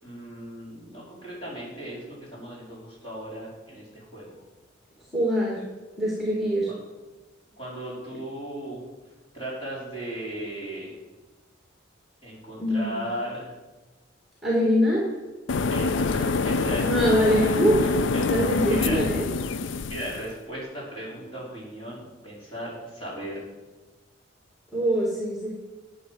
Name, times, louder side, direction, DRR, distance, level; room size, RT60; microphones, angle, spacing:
voice 1, 0.0-4.4 7.6-8.8 9.3-11.0 12.2-13.5 15.7-16.8 17.2-19.1 19.9-23.4, equal, 25° left, -6 dB, 5.3 m, -37 dB
voice 2, 5.1-5.6 6.0-6.7 12.6-13.0 14.4-15.1 16.9-17.8 18.3-19.2 24.7-25.5, equal, ahead, -3 dB, 2.6 m, -23 dB
sound 1, 15.5-20.3, left 4 dB, 70° left, 0.4 m, -25 dB
11.5 x 8.9 x 7.9 m, 1.2 s
head